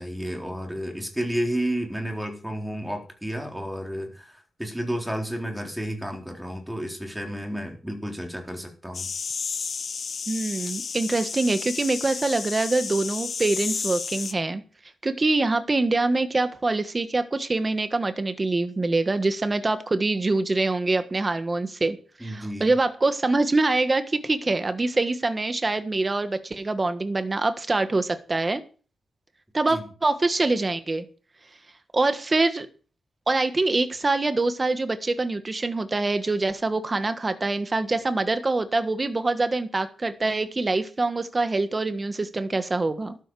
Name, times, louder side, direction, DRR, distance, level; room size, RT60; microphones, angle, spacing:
voice 1, 0.0-9.1 22.2-22.7 29.7-29.9, equal, 5° right, 2 dB, 3.7 m, -31 dB
sound 1, 8.9-14.3, left 5 dB, 50° left, 0.8 m, -32 dB
voice 2, 10.3-14.6 15.0-28.6 29.5-31.0 31.9-32.7 33.3-43.2, right 2 dB, 25° right, 10 dB, 1.3 m, -24 dB
14.5 x 12.0 x 4.8 m, 0.38 s
wide cardioid pair, 115°, 0 cm